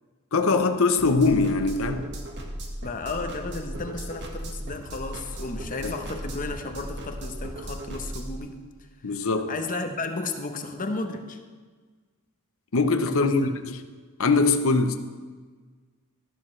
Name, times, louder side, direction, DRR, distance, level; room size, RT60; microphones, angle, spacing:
voice 1, 0.3-2.1 5.8-5.9 9.0-9.5 12.7-13.8 14.2-15.0, left 3 dB, 65° left, 8 dB, 0.8 m, -22 dB
sound 1, 1.0-8.4, right 1 dB, 55° right, 1.6 m, -37 dB
voice 2, 2.8-8.6 9.5-11.4 13.0-13.4, left 3 dB, 40° left, 6 dB, 0.9 m, -33 dB
13.0 x 12.0 x 3.2 m, 1.5 s
head